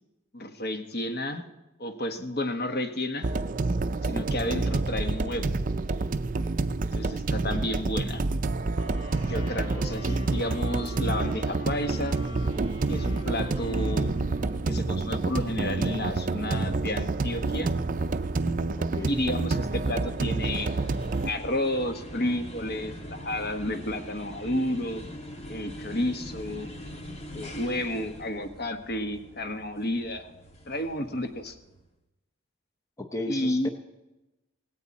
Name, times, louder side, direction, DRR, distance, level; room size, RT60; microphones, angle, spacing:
voice 1, 0.3-1.4 1.8-3.3 4.0-5.5 6.9-8.2 9.3-12.2 12.9-14.2 14.7-17.7 19.1-20.7 21.2-25.0 25.5-26.7 27.3-30.3 30.7-31.6 33.3-33.7, left 1 dB, 50° left, 7 dB, 1.2 m, -31 dB
sound 1, 3.2-21.3, right 3 dB, 40° right, 0.5 m, -28 dB
sound 2, 8.8-15.2, equal, 85° left, 4.8 m, -45 dB
sound 3, 17.4-31.8, equal, 30° left, 1.7 m, -44 dB
voice 2, 18.8-19.2 33.0-33.7, left 2 dB, 15° left, 4 dB, 0.7 m, -34 dB
17.5 x 17.0 x 4.2 m, 1.0 s
head